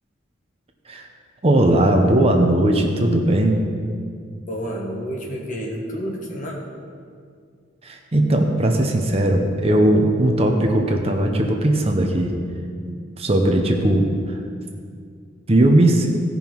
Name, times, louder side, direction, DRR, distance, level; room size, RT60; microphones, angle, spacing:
voice 1, 1.4-3.6 7.8-12.3 13.2-14.4 15.5-16.1, right 1 dB, 30° right, 2 dB, 0.8 m, -18 dB
voice 2, 4.5-6.6, equal, 40° left, 0 dB, 1.5 m, -29 dB
16.0 x 5.5 x 4.6 m, 2.2 s
head